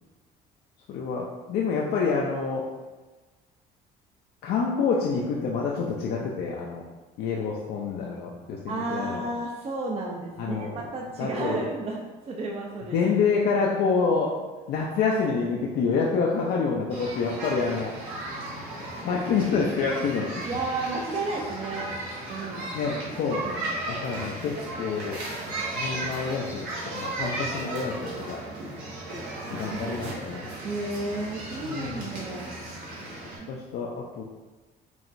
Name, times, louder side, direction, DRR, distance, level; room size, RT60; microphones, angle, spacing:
voice 1, 0.9-2.7 4.4-6.8 7.2-9.3 10.4-10.8 11.2-11.7 12.9-14.3 14.7-17.9 19.0-20.5 22.7-23.4 23.9-25.2 25.7-28.4 29.5-30.5 31.6-32.1 33.5-34.2, left 5 dB, 70° left, -2 dB, 0.5 m, -27 dB
voice 2, 8.7-13.1 20.5-21.9 22.3-22.7 23.1-23.7 29.6-30.1 30.6-32.5 33.4-33.5, right 2 dB, 35° right, -1 dB, 0.5 m, -33 dB
sound 1, 16.9-33.4, right 2 dB, 90° right, 1.3 m, -35 dB
4.7 x 3.1 x 2.6 m, 1.2 s
cardioid pair, 110°, 17 cm